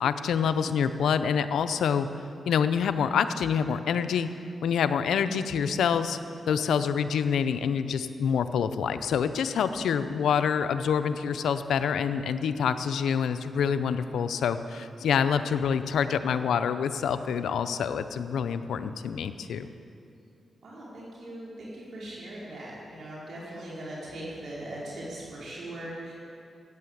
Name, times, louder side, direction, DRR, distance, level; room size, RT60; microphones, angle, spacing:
voice 1, 0.0-2.1 2.5-4.3 4.6-6.2 6.5-19.7, left 7 dB, 90° left, 10 dB, 0.6 m, -26 dB
voice 2, 20.6-26.1, right 1 dB, 75° right, -6 dB, 4.5 m, -40 dB
14.0 x 9.3 x 8.0 m, 2.6 s
cardioid pair, 65°, 0 cm